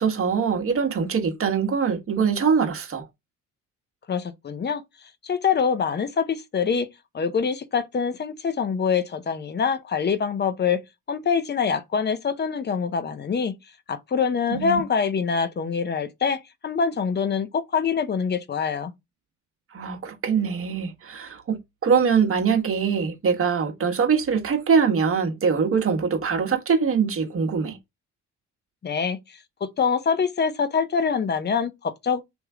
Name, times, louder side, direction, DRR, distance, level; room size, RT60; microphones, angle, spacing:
voice 1, 0.0-3.1 14.5-14.8 19.7-27.8, right 6 dB, 45° right, 1.4 m, -23 dB
voice 2, 4.1-4.8 5.2-6.9 7.1-10.8 11.1-13.5 13.9-18.9 28.8-32.2, left 6 dB, 35° left, 0.8 m, -25 dB
3.5 x 3.1 x 4.7 m
cardioid pair, 90°, 30 cm